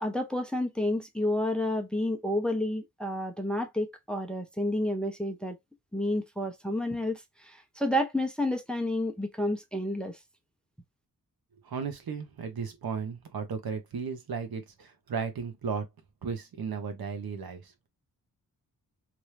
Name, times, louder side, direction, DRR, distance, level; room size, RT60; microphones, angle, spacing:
voice 1, 0.0-5.6 5.9-10.2, left 1 dB, ahead, 0.6 m, -30 dB
voice 2, 11.6-15.9 16.2-17.7, right 5 dB, 75° right, 1.0 m, -35 dB
3.0 x 2.6 x 3.3 m
wide cardioid pair, 100°, 37 cm